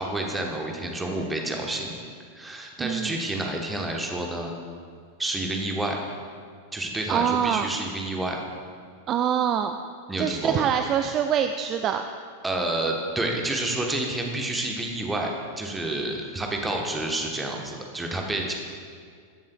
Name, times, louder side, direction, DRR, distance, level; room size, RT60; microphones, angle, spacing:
voice 1, 0.0-2.0 2.3-4.5 5.2-6.0 6.7-8.4 10.1-10.6 12.4-18.5, right 1 dB, 10° right, 1 dB, 1.1 m, -29 dB
voice 2, 2.8-3.1 7.1-7.7 9.1-9.8 10.2-12.0, right 8 dB, 30° right, 7 dB, 0.3 m, -24 dB
14.5 x 7.2 x 2.3 m, 2.1 s
figure-of-eight pair, 90°, 0 cm